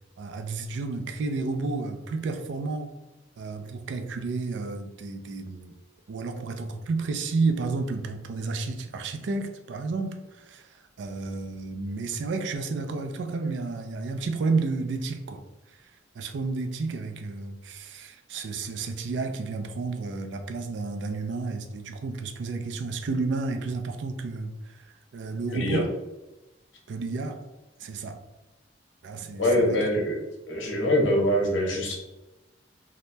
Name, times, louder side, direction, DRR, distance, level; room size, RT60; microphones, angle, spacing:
voice 1, 0.2-2.9 3.4-5.7 6.1-15.4 15.7-25.9 26.9-27.4 27.8-28.2 29.0-29.9, right 3 dB, 70° right, 7 dB, 0.4 m, -31 dB
voice 2, 29.4-30.2 30.5-31.9, left 1 dB, 90° left, 0 dB, 0.8 m, -24 dB
2.7 x 2.0 x 3.2 m, 1.0 s
head